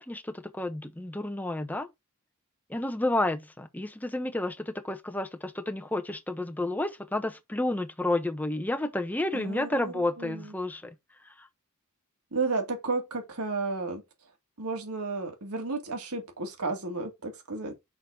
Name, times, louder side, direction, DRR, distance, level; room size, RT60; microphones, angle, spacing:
voice 1, 0.0-1.9 2.7-10.9 11.4-11.5, left 1 dB, 10° left, 0.9 m, -31 dB
voice 2, 9.3-10.5 12.3-14.0 14.6-17.7, right 3 dB, 75° right, 2.2 m, -33 dB
6.1 x 4.0 x 4.8 m
head